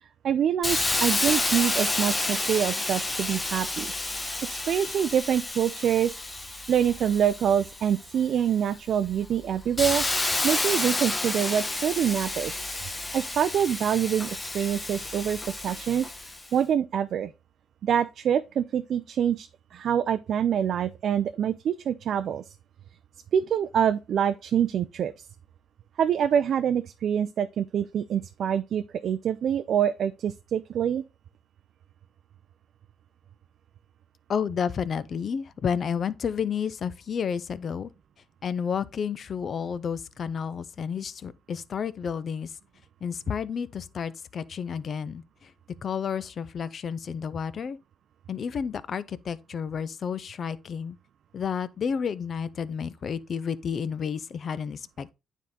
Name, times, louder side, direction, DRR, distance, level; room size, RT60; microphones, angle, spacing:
voice 1, 0.2-3.9 4.5-6.1 6.7-10.0 10.4-12.5 13.1-16.1 16.5-17.3 17.8-22.4 23.3-25.3 26.0-31.0, right 9 dB, 65° right, 0.4 m, -25 dB
Hiss, 0.6-8.2 8.7-16.5, left 2 dB, 20° left, 1.0 m, -30 dB
voice 2, 34.3-37.9 38.4-42.5 43.0-45.5 45.8-47.8 48.3-51.0 51.3-55.1, left 7 dB, 50° left, 0.5 m, -31 dB
9.3 x 3.6 x 3.8 m
cardioid pair, 90°, 0 cm